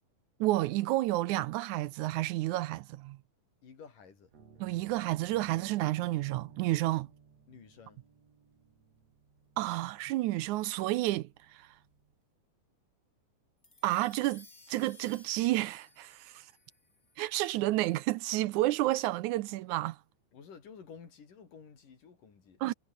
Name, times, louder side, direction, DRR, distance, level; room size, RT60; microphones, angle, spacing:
voice 1, 0.4-3.2 4.6-7.1 9.6-11.7 13.8-16.5 17.2-20.0 22.6-22.7, right 17 dB, 80° right, 2.0 m, -30 dB
voice 2, 3.6-4.3 7.5-8.0 20.3-22.6, left 6 dB, 85° left, 5.6 m, -52 dB
sound 1, 4.3-12.2, right 6 dB, 55° right, 4.5 m, -58 dB
sound 2, 13.6-18.2, left 3 dB, 25° left, 4.5 m, -59 dB
omnidirectional pair, 3.7 m